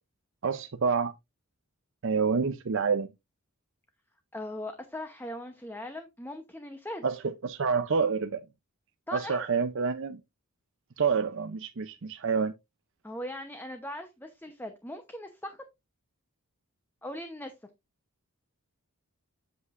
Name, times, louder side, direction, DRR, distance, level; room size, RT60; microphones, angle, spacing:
voice 1, 0.4-1.1 2.0-3.1 7.0-8.4 9.1-10.2 11.0-12.5, right 5 dB, 55° right, 0.6 m, -28 dB
voice 2, 4.3-7.0 9.1-9.5 13.0-15.6 17.0-17.5, left 1 dB, 10° left, 0.8 m, -39 dB
8.1 x 7.6 x 2.5 m
head